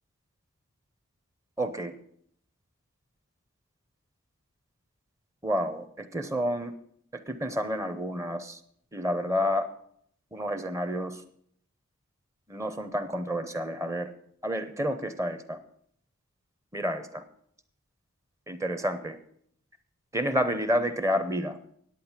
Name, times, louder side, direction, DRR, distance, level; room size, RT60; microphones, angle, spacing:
voice 1, 1.6-1.9 5.4-6.7 7.1-8.6 8.9-9.7 10.3-11.2 12.5-14.1 14.4-15.6 16.7-17.2 18.5-19.2 20.1-21.6, equal, 15° right, 10 dB, 0.7 m, -29 dB
10.0 x 8.7 x 7.3 m, 0.66 s
head